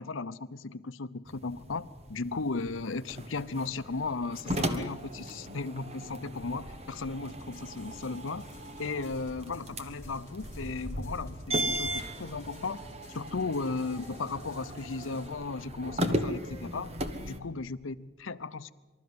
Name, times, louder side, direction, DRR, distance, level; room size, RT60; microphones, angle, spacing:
voice 1, 0.0-8.5 8.8-12.8 13.1-16.9 17.2-18.7, left 3 dB, 85° left, 13 dB, 0.8 m, -36 dB
sound 1, 1.3-17.4, equal, 30° right, 1.4 m, -37 dB
sound 2, 7.3-15.3, left 1 dB, 15° left, 4.3 m, -53 dB
24.5 x 13.5 x 9.6 m, 1.2 s
head